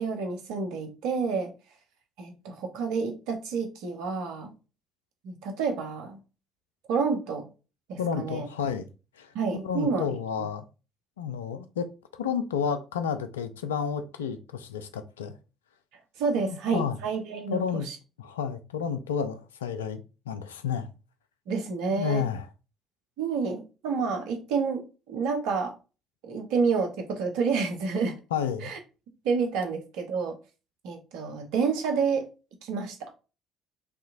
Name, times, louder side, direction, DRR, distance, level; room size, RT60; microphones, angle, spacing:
voice 1, 0.0-1.5 2.2-4.5 5.2-6.2 6.9-7.5 7.9-8.5 9.3-10.1 10.4-10.5 16.2-18.0 21.5-22.2 23.2-25.7 26.2-28.2 28.6-28.8 29.2-30.4 30.8-32.3 32.6-33.1, right 5 dB, 70° right, 0.9 m, -29 dB
voice 2, 8.0-8.9 9.2-9.3 9.6-10.6 11.2-11.9 12.1-15.3 16.5-17.0 17.5-17.9 18.2-20.9 22.0-22.4 28.3-28.7, left 7 dB, 85° left, 0.4 m, -31 dB
5.9 x 2.9 x 2.6 m
hypercardioid pair, 50°, 0 cm